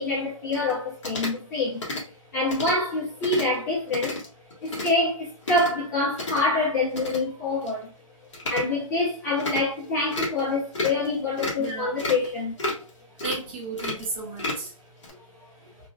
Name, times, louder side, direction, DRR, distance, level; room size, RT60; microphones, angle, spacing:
voice 1, 0.0-1.8 2.3-4.2 4.6-7.9 8.5-12.6, left 2 dB, 30° left, 1.2 m, -26 dB
sound 1, 0.5-0.7 1.0-1.4 1.8-2.0 2.5-2.7 3.2-3.6 3.9-4.3 4.5-4.9 5.4-5.7 6.1-6.4 6.9-7.2 7.6-7.7 8.3-8.6 9.4-9.6 10.1-10.4 10.7-11.1 11.4-11.7 12.0-12.3 12.6-12.9 13.2-13.4 13.8-14.7 15.0-15.1, left 2 dB, 60° left, 1.3 m, -31 dB
voice 2, 11.6-12.0 13.2-14.7 15.1-15.2 15.6-15.7, right 3 dB, 20° right, 0.7 m, -34 dB
3.0 x 2.3 x 2.4 m
hypercardioid pair, 160°, 18 cm